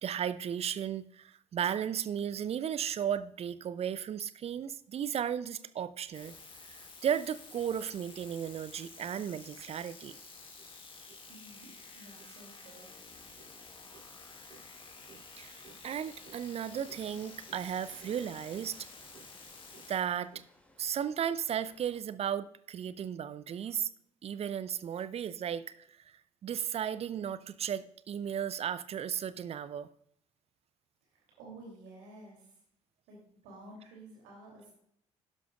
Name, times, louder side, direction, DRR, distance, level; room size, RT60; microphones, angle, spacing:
voice 1, 0.0-6.3 6.7-10.2 13.9-14.0 14.5-14.6 15.1-18.8 19.1-19.3 19.7-20.4 20.8-23.9 24.2-29.9, right 9 dB, 40° right, 0.6 m, -35 dB
sound 1, 6.1-20.0, left 4 dB, 35° left, 2.1 m, -51 dB
voice 2, 11.3-12.9 31.1-32.6 33.1-34.7, right 2 dB, 65° right, 3.0 m, -52 dB
sound 2, 16.7-22.0, left 1 dB, 5° left, 2.4 m, -62 dB
12.0 x 11.0 x 2.4 m
figure-of-eight pair, 45°, 16 cm